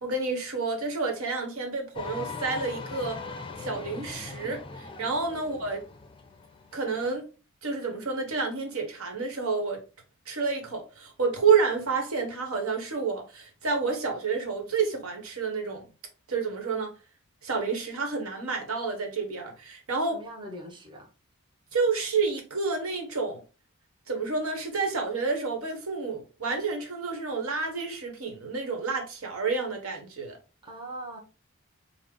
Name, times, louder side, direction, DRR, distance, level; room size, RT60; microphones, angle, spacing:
voice 1, 0.0-3.2 3.6-5.9 6.7-7.3 7.6-9.8 10.3-15.9 16.3-17.0 17.4-20.2 21.7-23.4 24.1-30.4, right 4 dB, 75° right, 1.2 m, -29 dB
sound 1, 1.9-7.2, left 4 dB, 25° left, 0.4 m, -40 dB
voice 2, 20.1-21.1 30.6-31.2, right 1 dB, 20° right, 0.9 m, -41 dB
5.4 x 2.1 x 3.7 m
head